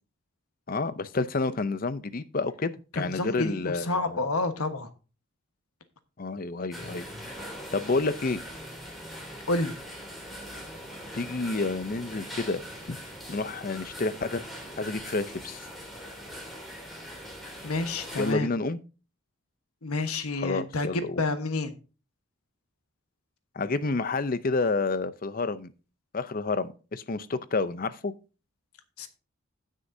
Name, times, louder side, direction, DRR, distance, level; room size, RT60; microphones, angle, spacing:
voice 1, 0.7-4.2 6.2-7.3 7.7-8.4 11.1-12.6 12.9-13.0 13.3-14.4 14.8-15.7 18.2-18.8 20.4-21.2 23.6-25.7 26.1-28.1, left 3 dB, 40° left, 0.6 m, -29 dB
voice 2, 2.9-4.9 9.5-9.7 17.6-18.5 19.8-21.7 29.0-29.1, left 2 dB, 85° left, 1.3 m, -29 dB
sound 1, 6.7-18.3, equal, ahead, 2.9 m, -41 dB
17.0 x 6.4 x 2.7 m
head